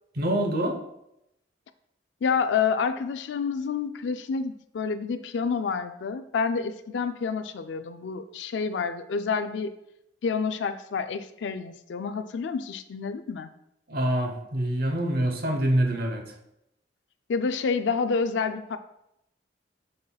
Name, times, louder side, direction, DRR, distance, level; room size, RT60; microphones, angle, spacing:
voice 1, 0.2-0.8 13.9-16.2, right 1 dB, 60° right, 3 dB, 0.9 m, -25 dB
voice 2, 2.2-9.7 10.2-13.5 17.3-18.8, left 5 dB, 80° left, 10 dB, 0.4 m, -28 dB
7.6 x 5.6 x 2.3 m, 0.82 s
head